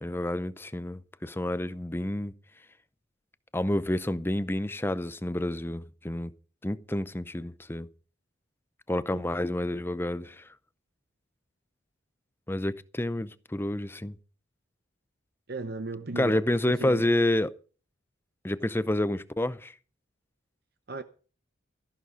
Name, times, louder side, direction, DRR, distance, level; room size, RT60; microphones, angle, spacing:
voice 1, 0.0-2.3 3.5-6.3 6.6-7.9 8.9-10.5 12.5-14.2 16.2-17.5 18.4-19.7, left 1 dB, 10° left, 0.6 m, -29 dB
voice 2, 15.5-17.1 20.9-21.0, right 3 dB, 50° right, 0.8 m, -36 dB
14.0 x 11.0 x 5.1 m
head